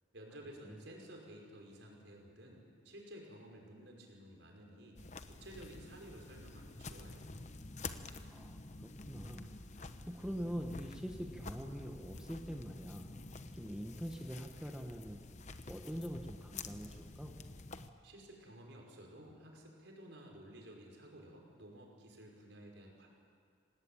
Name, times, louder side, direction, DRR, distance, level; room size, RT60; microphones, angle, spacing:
voice 1, 0.1-5.0 5.3-7.4 18.0-23.1, right 1 dB, 70° right, 0 dB, 5.6 m, -54 dB
sound 1, 5.0-17.9, left 3 dB, 35° left, 1.0 m, -49 dB
voice 2, 8.3-9.5 9.8-13.1 13.5-15.2 15.7-17.3, equal, 5° right, 2 dB, 1.3 m, -44 dB
27.0 x 18.5 x 9.0 m, 2.2 s
head